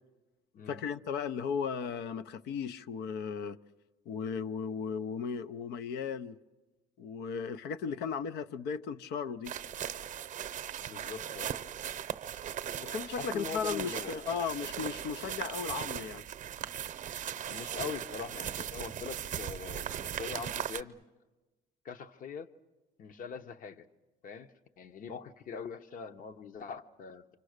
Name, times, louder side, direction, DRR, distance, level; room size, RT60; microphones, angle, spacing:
voice 1, 0.7-3.6 4.1-6.4 7.0-9.5 12.8-16.2, left 6 dB, 80° left, 0.8 m, -36 dB
sound 1, 9.5-20.8, right 10 dB, 50° right, 0.7 m, -38 dB
voice 2, 10.8-11.6 13.2-14.2 17.5-21.0 21.8-22.5 23.0-23.9 24.2-27.4, left 6 dB, 55° left, 1.1 m, -42 dB
28.5 x 25.0 x 6.6 m
cardioid pair, 110°, 17 cm